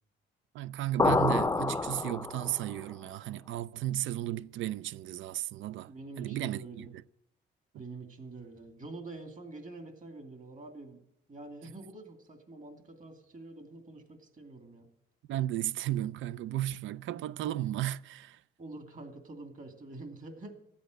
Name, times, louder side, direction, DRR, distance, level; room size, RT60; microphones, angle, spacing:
voice 1, 0.5-5.9 6.2-6.9 15.3-18.4, right 13 dB, 75° right, 0.4 m, -34 dB
sound 1, 1.0-2.7, left 3 dB, 15° left, 0.5 m, -28 dB
voice 2, 5.9-6.9 7.8-11.0 11.3-14.9 18.6-20.5, right 2 dB, 40° right, 2.7 m, -46 dB
13.0 x 8.5 x 7.8 m
cardioid pair, 90°, 20 cm